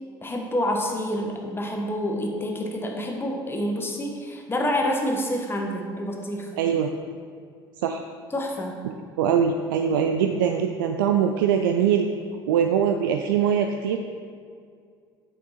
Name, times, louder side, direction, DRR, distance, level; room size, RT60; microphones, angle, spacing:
voice 1, 0.2-6.5 8.3-8.8, left 1 dB, 20° left, 1 dB, 1.3 m, -28 dB
voice 2, 6.6-6.9 7.8-8.0 9.2-12.1 12.5-14.0, right 8 dB, 65° right, 5 dB, 0.4 m, -22 dB
8.2 x 5.9 x 4.3 m, 2.2 s
figure-of-eight pair, 60°, 12 cm